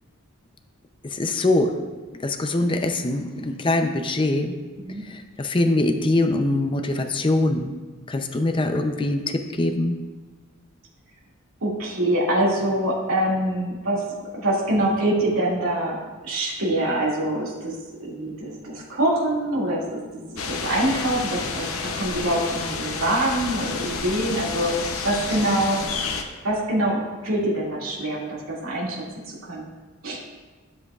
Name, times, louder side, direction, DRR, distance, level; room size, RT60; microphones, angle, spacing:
voice 1, 1.0-1.8 2.2-4.5 5.1-7.7 8.1-10.0, left 2 dB, 25° left, 6 dB, 0.5 m, -23 dB
voice 2, 11.6-14.0 14.3-16.0 16.2-17.7 18.0-25.8 26.4-29.0 29.5-29.7 30.0-30.2, right 1 dB, 85° right, -5 dB, 2.3 m, -24 dB
sound 1, 20.4-26.2, left 4 dB, 80° left, 0.8 m, -30 dB
12.5 x 7.7 x 2.4 m, 1.3 s
head